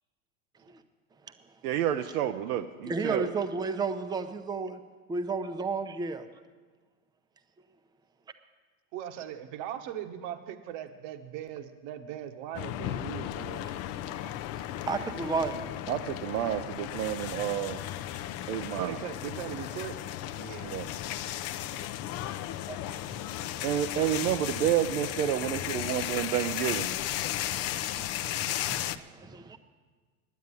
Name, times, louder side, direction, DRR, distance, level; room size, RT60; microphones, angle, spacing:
voice 1, 1.6-3.3 15.9-17.8 18.5-19.0 20.7-20.9 23.6-26.9, right 11 dB, 80° right, 6 dB, 0.8 m, -29 dB
voice 2, 2.8-4.8 5.1-6.2 14.9-15.7 22.5-23.7 27.3-29.6, right 4 dB, 10° right, 8 dB, 0.6 m, -33 dB
voice 3, 8.9-13.7 18.7-20.0 20.3-21.0, right 10 dB, 60° right, 7 dB, 1.3 m, -39 dB
sound 1, 12.5-29.0, left 12 dB, 35° left, 0.5 m, -35 dB
9.6 x 9.3 x 9.7 m, 1.4 s
supercardioid pair, 120°, 43 cm